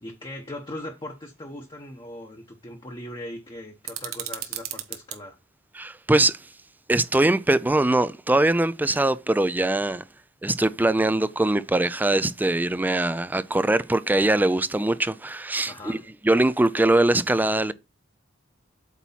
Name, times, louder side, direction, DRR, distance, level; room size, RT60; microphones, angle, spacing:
voice 1, 0.0-5.4 15.7-16.0, left 1 dB, 25° left, 0.9 m, -39 dB
sound 1, 3.8-5.2, right 12 dB, 90° right, 1.0 m, -35 dB
voice 2, 5.8-6.4 6.9-10.0 10.4-16.0 16.2-17.7, right 2 dB, 10° right, 0.3 m, -22 dB
8.2 x 3.0 x 5.5 m
head